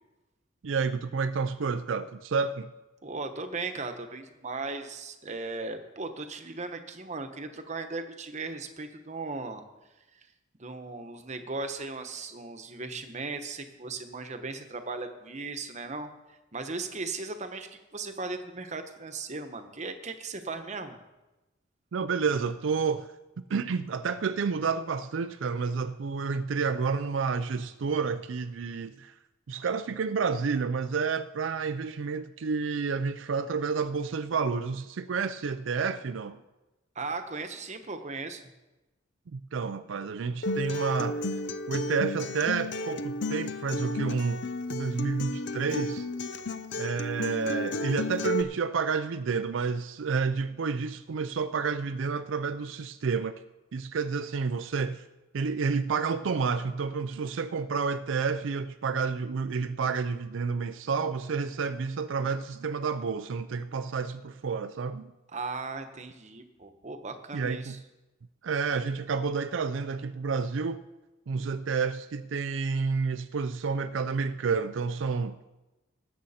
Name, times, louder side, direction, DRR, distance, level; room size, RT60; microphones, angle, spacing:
voice 1, 0.6-2.7 21.9-23.1 23.5-29.1 29.5-36.4 39.3-41.3 41.7-44.4 44.7-46.1 46.8-53.3 53.7-55.0 55.3-65.1 67.3-67.8 68.4-70.8 71.3-75.4, right 5 dB, 80° right, 0.4 m, -30 dB
voice 2, 3.0-9.6 10.6-16.1 16.5-21.0 36.9-38.4 65.3-67.8, right 3 dB, 40° right, 1.0 m, -37 dB
Acoustic guitar, 40.4-48.4, left 1 dB, 65° left, 0.7 m, -33 dB
19.0 x 7.7 x 4.3 m
head